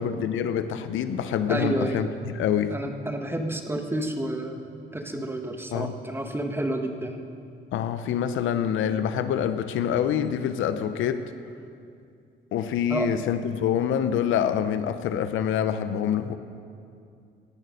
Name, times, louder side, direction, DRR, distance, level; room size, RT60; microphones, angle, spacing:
voice 1, 0.0-2.7 5.7-5.9 7.7-11.3 12.5-16.4, left 8 dB, 80° left, 11 dB, 0.7 m, -26 dB
voice 2, 1.5-2.0 2.7-4.6 4.9-7.2 12.9-13.1, right 1 dB, 10° right, 5 dB, 1.2 m, -30 dB
17.5 x 6.6 x 6.4 m, 2.5 s
cardioid pair, 90°, 20 cm